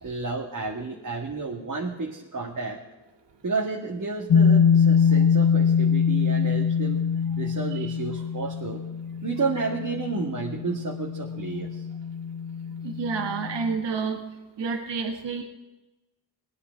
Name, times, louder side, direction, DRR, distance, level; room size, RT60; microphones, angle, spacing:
voice 1, 0.0-2.8 3.4-7.0 7.4-8.8 9.2-11.8, right 4 dB, 45° right, -2 dB, 2.0 m, -31 dB
sound 1, 4.3-13.8, left 6 dB, 50° left, 1.1 m, -24 dB
voice 2, 12.8-14.2 14.6-15.4, right 5 dB, 70° right, 3 dB, 1.8 m, -29 dB
19.0 x 9.9 x 4.6 m, 1.1 s
cardioid pair, 55°, 45 cm